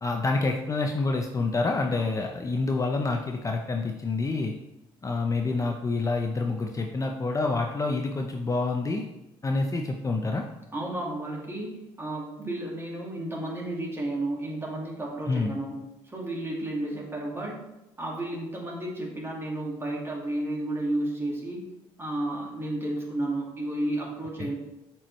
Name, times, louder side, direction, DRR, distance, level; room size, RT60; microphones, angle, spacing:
voice 1, 0.0-4.5 5.0-9.1 9.4-10.4 15.3-15.5 24.4-24.5, left 3 dB, 25° left, 2 dB, 0.6 m, -27 dB
voice 2, 10.7-11.7 12.0-15.7 16.1-17.6 18.0-21.6 22.0-24.5, right 1 dB, 20° right, -2 dB, 2.1 m, -32 dB
7.2 x 4.6 x 3.1 m, 0.94 s
supercardioid pair, 65°, 12 cm